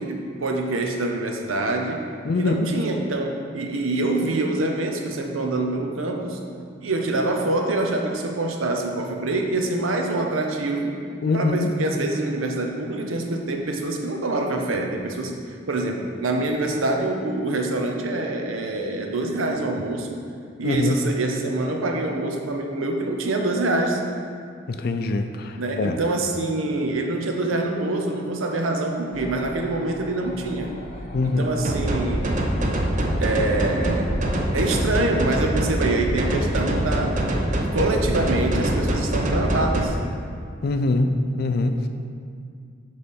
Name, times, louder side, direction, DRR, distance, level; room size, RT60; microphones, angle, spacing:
voice 1, 0.0-2.0 2.4-6.4 6.8-11.0 11.3-15.3 15.7-20.2 20.6-24.0 25.6-30.7 31.2-32.4 33.2-34.2 34.5-40.0, right 2 dB, 85° right, 2 dB, 0.7 m, -25 dB
voice 2, 2.3-2.7 11.2-11.7 20.6-21.0 24.7-26.0 31.1-31.5 40.6-41.9, left 2 dB, 50° left, 7 dB, 0.4 m, -23 dB
sound 1, 29.1-34.4, left 1 dB, 35° left, 0.8 m, -39 dB
sound 2, 31.6-39.9, right 1 dB, 40° right, 0.6 m, -24 dB
6.7 x 3.3 x 5.3 m, 2.2 s
head